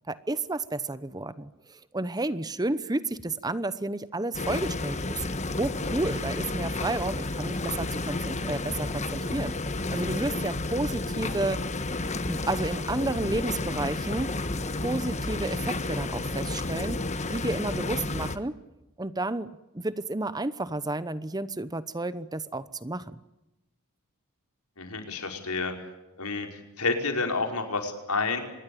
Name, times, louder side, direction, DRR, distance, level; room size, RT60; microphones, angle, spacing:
voice 1, 0.1-5.2 5.6-9.5 9.9-11.6 12.3-14.4 14.8-17.0 17.3-18.6 19.0-23.2, right 2 dB, 15° right, 14 dB, 0.9 m, -31 dB
sound 1, 4.3-18.4, left 2 dB, 30° left, 1.4 m, -31 dB
voice 2, 24.8-25.7 26.2-26.5 26.8-28.4, left 4 dB, 80° left, 4 dB, 5.2 m, -29 dB
26.0 x 21.0 x 8.7 m, 0.98 s
head